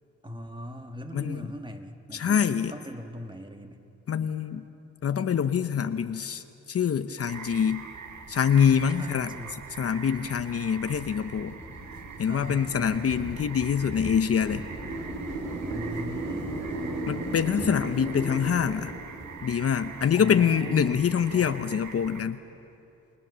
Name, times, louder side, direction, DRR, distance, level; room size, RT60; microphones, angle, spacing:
voice 1, 0.2-2.4 2.7-3.8 8.9-9.6 12.3-13.1 15.7-17.1 20.1-21.0 21.3-21.7, equal, 15° right, 5 dB, 1.8 m, -40 dB
voice 2, 1.1-1.5 2.1-2.7 4.1-4.7 5.0-7.9 8.3-9.3 9.8-11.5 12.2-14.6 17.1-18.9 19.4-22.4, left 7 dB, 50° left, 10 dB, 0.8 m, -25 dB
sound 1, 7.3-22.2, right 6 dB, 80° right, 1.6 m, -44 dB
sound 2, 8.1-21.5, right 2 dB, 65° right, 4.2 m, -38 dB
sound 3, 10.9-18.9, left 4 dB, 75° left, 3.4 m, -52 dB
29.0 x 19.5 x 6.9 m, 2.6 s
cardioid pair, 85°, 29 cm